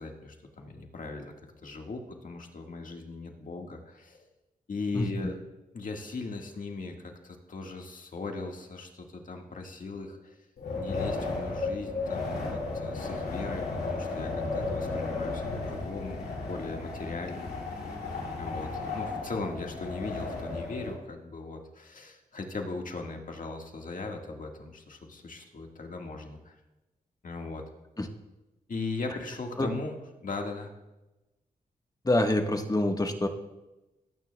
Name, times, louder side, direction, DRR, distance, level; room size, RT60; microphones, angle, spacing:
voice 1, 0.0-1.3 1.6-4.3 4.7-5.4 5.7-10.4 10.8-17.5 18.4-26.6 27.2-27.6 28.7-30.7, left 3 dB, 60° left, 2 dB, 1.7 m, -38 dB
voice 2, 4.9-5.3 28.0-28.1 29.6-29.7 32.0-33.3, left 1 dB, 25° left, 4 dB, 1.3 m, -26 dB
Wind, 10.6-20.9, left 3 dB, 85° left, 2.7 m, -34 dB
19.5 x 9.2 x 2.3 m, 1.0 s
cardioid pair, 55°, 16 cm